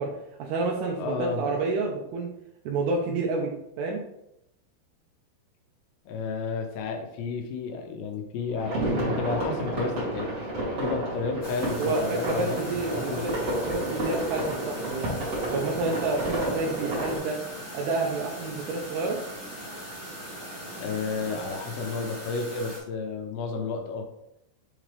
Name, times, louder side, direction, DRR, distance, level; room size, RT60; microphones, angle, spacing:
voice 1, 0.0-2.3 2.7-4.0 11.8-15.1 15.5-17.4 17.7-19.2, right 3 dB, 85° right, -1 dB, 2.2 m, -29 dB
voice 2, 1.0-1.5 6.1-10.3 10.8-13.2 20.8-24.1, left 4 dB, 80° left, 4 dB, 2.6 m, -32 dB
sound 1, 8.5-17.2, right 1 dB, 40° right, 2.4 m, -30 dB
sound 2, 11.4-22.8, equal, 45° left, 0.9 m, -40 dB
sound 3, 15.5-22.1, right 3 dB, 70° right, 3.0 m, -48 dB
7.7 x 3.8 x 3.3 m, 0.81 s
omnidirectional pair, 5.6 m